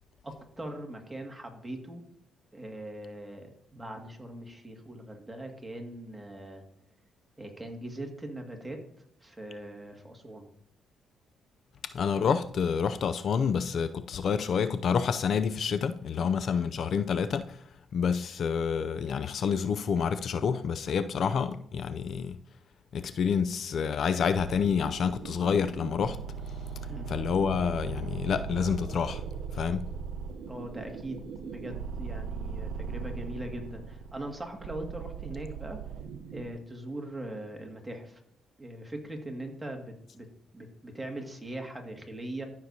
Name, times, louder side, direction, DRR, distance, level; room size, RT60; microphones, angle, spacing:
voice 1, 0.2-2.0 2.5-6.6 7.4-8.8 9.2-10.5 16.2-16.3 26.9-27.1 30.5-35.8 36.3-38.2 38.6-40.3 40.5-42.5, right 1 dB, 10° right, 2.0 m, -41 dB
voice 2, 11.9-17.6 17.9-22.4 22.9-26.2 27.1-29.2 29.5-29.9, left 6 dB, 60° left, 0.4 m, -28 dB
sound 1, 24.4-36.5, right 5 dB, 90° right, 0.7 m, -39 dB
14.0 x 6.4 x 2.8 m
cardioid pair, 90°, 0 cm